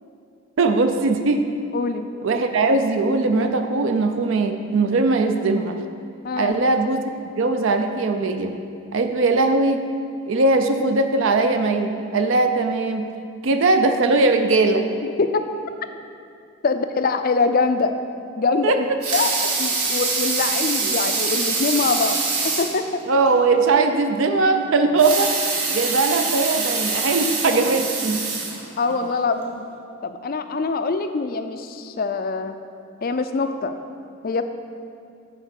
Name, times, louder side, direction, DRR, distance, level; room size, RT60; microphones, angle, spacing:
voice 1, 0.6-1.5 2.2-5.8 6.4-8.5 8.9-9.8 10.3-13.1 13.4-14.9 18.6-18.8 20.8-20.9 23.1-25.3 25.7-28.3, right 3 dB, 60° right, 6 dB, 0.4 m, -20 dB
voice 2, 1.7-2.1 6.2-6.6 15.2-15.4 16.6-17.9 18.4-18.9 19.1-23.0 28.8-29.7 30.0-32.5 33.0-33.7 34.2-34.4, left 4 dB, 40° left, 8 dB, 0.4 m, -24 dB
Water tap faucet / Sink (filling or washing) / Liquid, 18.8-22.8 23.2-23.3 23.7-23.8 24.8-29.0 29.6-29.7, right 4 dB, 85° right, 1.4 m, -24 dB
8.6 x 4.4 x 6.5 m, 2.4 s
head